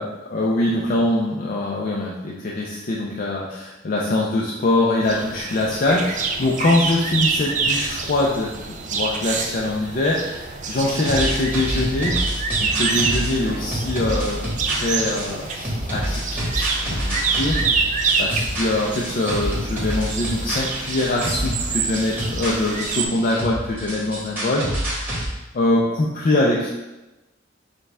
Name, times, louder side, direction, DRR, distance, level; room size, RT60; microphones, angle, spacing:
voice 1, 0.0-12.1 12.6-26.8, left 2 dB, 45° left, -3 dB, 0.5 m, -23 dB
sound 1, 5.0-23.1, right 4 dB, 40° right, 0.4 m, -27 dB
sound 2, 11.0-25.3, equal, 10° right, 1.2 m, -28 dB
6.4 x 2.3 x 3.3 m, 1.0 s
head